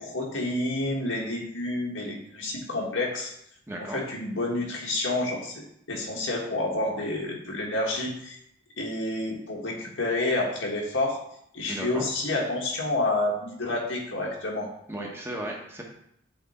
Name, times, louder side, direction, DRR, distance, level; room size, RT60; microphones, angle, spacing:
voice 1, 0.0-3.3 3.8-8.4 8.8-11.2 11.5-14.7, left 2 dB, 80° left, -2 dB, 1.5 m, -29 dB
voice 2, 3.7-4.0 11.7-12.0 14.9-15.8, right 1 dB, 10° right, -1 dB, 1.1 m, -35 dB
8.0 x 3.5 x 4.2 m, 0.73 s
head